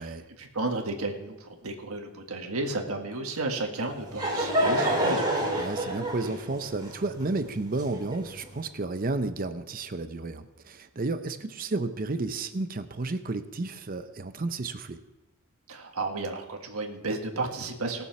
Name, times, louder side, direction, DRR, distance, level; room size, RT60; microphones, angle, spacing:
voice 1, 0.0-5.3 15.7-18.0, right 2 dB, 90° right, 3 dB, 1.8 m, -33 dB
Laughter / Crowd, 3.8-8.4, right 1 dB, 20° right, 3.7 m, -28 dB
voice 2, 5.6-15.0, right 3 dB, 40° right, 10 dB, 0.6 m, -32 dB
18.5 x 7.0 x 5.9 m, 1.0 s
head